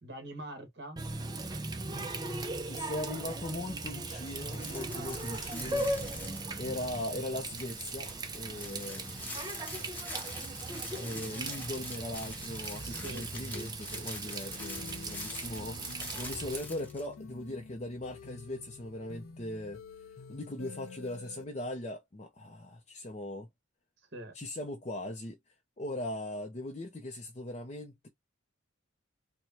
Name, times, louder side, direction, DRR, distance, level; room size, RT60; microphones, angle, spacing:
voice 1, 0.0-1.0 4.9-5.5 8.5-9.1 9.3-10.0 12.8-14.6 24.1-24.3, right 1 dB, 55° right, 1.6 m, -47 dB
Water tap faucet, 1.0-16.6, right 2 dB, 20° right, 0.6 m, -38 dB
voice 2, 2.6-5.9 6.3-9.3 11.0-19.8 20.3-23.5 24.3-25.4 25.8-28.1, left 1 dB, 35° left, 0.6 m, -39 dB
sound 1, 4.2-6.8 7.1-7.2 7.6-17.1, left 2 dB, 10° left, 0.9 m, -45 dB
sound 2, 14.6-21.4, left 5 dB, 80° left, 0.5 m, -49 dB
4.6 x 2.3 x 2.7 m
head